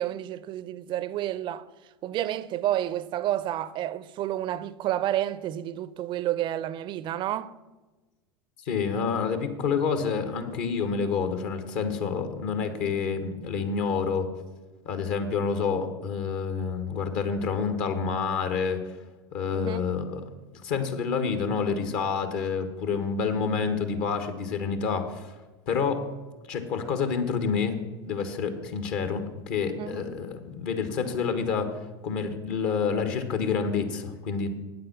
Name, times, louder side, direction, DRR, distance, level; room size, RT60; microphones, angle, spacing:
voice 1, 0.0-1.7 2.0-7.5 19.5-19.8 29.8-30.2, right 12 dB, 35° right, 0.5 m, -30 dB
voice 2, 8.7-14.3 14.8-18.8 19.3-20.2 20.5-25.3 25.7-26.1 26.5-31.7 32.0-34.5, left 5 dB, 55° left, 1.4 m, -28 dB
9.3 x 7.7 x 6.0 m
figure-of-eight pair, 85°, 14 cm